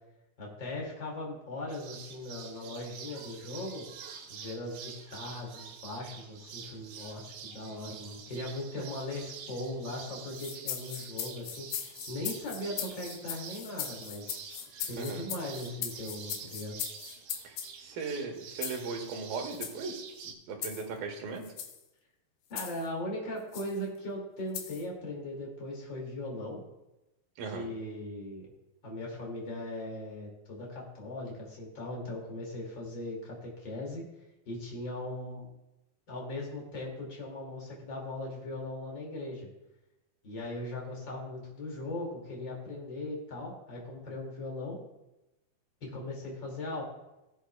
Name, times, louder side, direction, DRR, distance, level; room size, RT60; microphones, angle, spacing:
voice 1, 0.4-3.8 4.3-14.5 14.9-16.7 22.5-26.6 27.5-28.5 28.8-34.0 34.5-35.5 36.1-39.5 40.2-44.8 45.8-46.8, left 1 dB, 35° left, -2 dB, 2.6 m, -39 dB
sound 1, 1.7-20.3, right 7 dB, 90° right, 3.1 m, -47 dB
sound 2, 10.3-17.7 18.6-18.9 19.5-19.8 20.6-20.9 21.4-21.8 22.6-22.9 23.5-23.7 24.5-24.8, left 9 dB, 85° left, 2.8 m, -39 dB
voice 2, 17.4-21.5 27.4-27.7, right 4 dB, 70° right, 2 dB, 3.0 m, -38 dB
17.5 x 8.2 x 2.3 m, 0.96 s
omnidirectional pair, 4.4 m